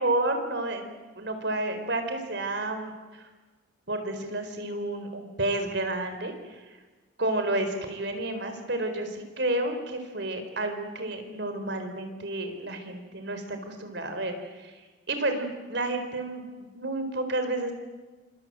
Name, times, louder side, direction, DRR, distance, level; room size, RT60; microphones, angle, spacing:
voice 1, 0.0-3.3 3.9-6.6 7.2-14.7 15.1-16.4 16.7-17.7, right 2 dB, 60° right, 7 dB, 4.3 m, -31 dB
27.5 x 26.0 x 7.7 m, 1.3 s
head